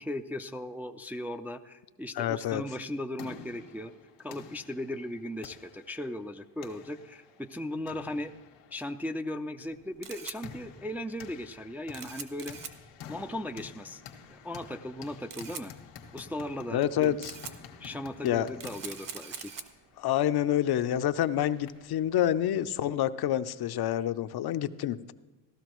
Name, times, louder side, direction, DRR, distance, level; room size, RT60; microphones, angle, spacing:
voice 1, 0.0-3.9 4.2-8.3 8.7-12.6 13.1-14.0 14.3-15.7 16.1-17.1 17.8-19.5, left 1 dB, 5° right, 6 dB, 0.4 m, -37 dB
voice 2, 2.2-2.6 16.7-17.3 18.2-18.5 20.0-25.1, left 11 dB, 55° left, 13 dB, 0.6 m, -28 dB
sound 1, 2.8-22.0, left 6 dB, 90° left, 1.6 m, -50 dB
Camera, 9.6-23.0, right 6 dB, 45° right, 1.3 m, -47 dB
16.0 x 12.5 x 3.0 m, 1.2 s
supercardioid pair, 85°, 47 cm